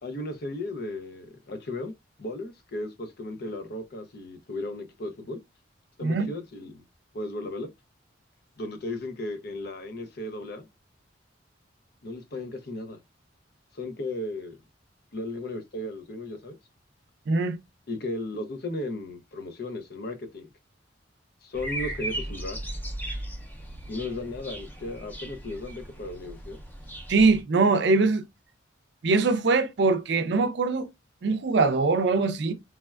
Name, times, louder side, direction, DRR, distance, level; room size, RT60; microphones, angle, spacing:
voice 1, 0.0-1.9 2.2-5.4 6.0-6.8 7.1-7.7 8.6-10.7 12.0-13.0 13.7-14.6 15.1-16.6 17.9-20.5 21.4-22.6 23.9-26.6, left 2 dB, 55° left, 0.5 m, -35 dB
voice 2, 17.3-17.6 27.1-28.2 29.0-30.9 31.2-32.5, right 3 dB, 60° right, 0.4 m, -22 dB
sound 1, 21.5-27.4, right 1 dB, 10° left, 0.6 m, -37 dB
3.3 x 2.2 x 2.2 m
head